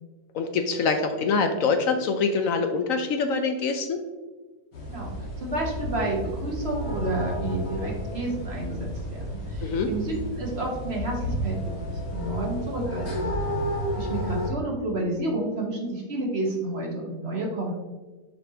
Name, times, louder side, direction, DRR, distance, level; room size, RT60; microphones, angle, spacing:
voice 1, 0.3-4.0 9.6-9.9, left 4 dB, 70° left, 6 dB, 0.8 m, -25 dB
sound 1, 4.7-14.5, equal, 90° left, 2.2 m, -31 dB
voice 2, 4.8-13.3 13.9-17.7, right 1 dB, 45° right, -1 dB, 1.2 m, -30 dB
6.3 x 5.4 x 2.8 m, 1.3 s
omnidirectional pair, 1.8 m